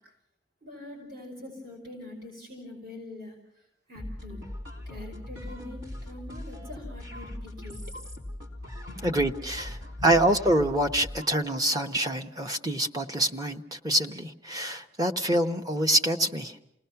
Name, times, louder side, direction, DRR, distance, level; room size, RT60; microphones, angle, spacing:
voice 1, 0.6-3.4 3.9-4.4 4.9-7.8 8.9-9.0 10.0-10.1, left 2 dB, 50° right, 0 dB, 5.2 m, -43 dB
sound 1, 4.0-11.4, left 1 dB, 85° right, 3.6 m, -40 dB
voice 2, 9.0-16.7, right 1 dB, 20° right, 5 dB, 1.0 m, -26 dB
28.5 x 19.0 x 5.8 m, 0.80 s
head